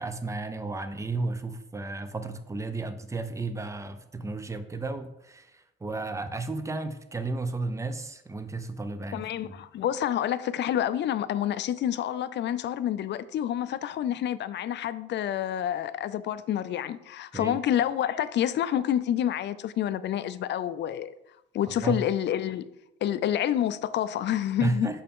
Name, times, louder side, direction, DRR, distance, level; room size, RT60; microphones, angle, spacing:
voice 1, 0.0-9.5 17.3-17.6 21.7-22.0 24.6-25.0, right 3 dB, 15° right, 0.7 m, -33 dB
voice 2, 9.1-21.1 21.5-22.7 23.0-24.9, left 10 dB, 65° left, 0.5 m, -28 dB
6.6 x 5.6 x 3.6 m
cardioid pair, 90°, 20 cm